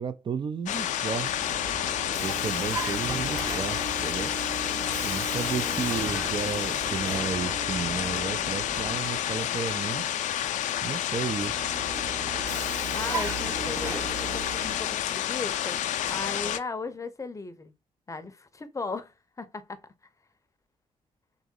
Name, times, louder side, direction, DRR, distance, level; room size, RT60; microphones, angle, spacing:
voice 1, 0.0-1.5 2.2-4.3 5.0-10.1 10.8-11.6, right 6 dB, 40° right, 0.4 m, -33 dB
sound 1, 0.7-16.6, left 11 dB, 80° left, 0.4 m, -30 dB
Vehicle, 1.0-9.5 11.2-15.1, right 3 dB, 25° right, 0.8 m, -37 dB
voice 2, 5.5-5.9 12.9-17.7 18.1-19.8, left 4 dB, 25° left, 0.6 m, -37 dB
3.7 x 3.0 x 3.6 m
cardioid pair, 80°, 13 cm